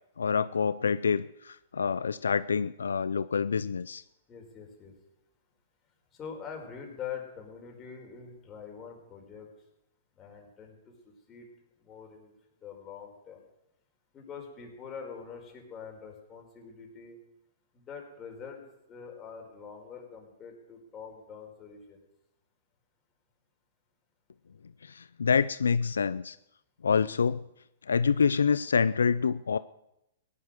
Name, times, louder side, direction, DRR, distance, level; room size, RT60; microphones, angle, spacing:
voice 1, 0.2-4.0 24.8-26.4 26.8-27.4 27.9-29.6, left 6 dB, 85° left, 16 dB, 0.4 m, -27 dB
voice 2, 4.3-4.9 6.1-9.5 10.2-11.5 11.8-12.3 12.6-13.4 14.1-17.2 17.7-18.6 18.9-22.0, left 6 dB, 25° left, 1 dB, 4.7 m, -44 dB
17.0 x 11.5 x 6.5 m, 0.85 s
hypercardioid pair, 125°, 0 cm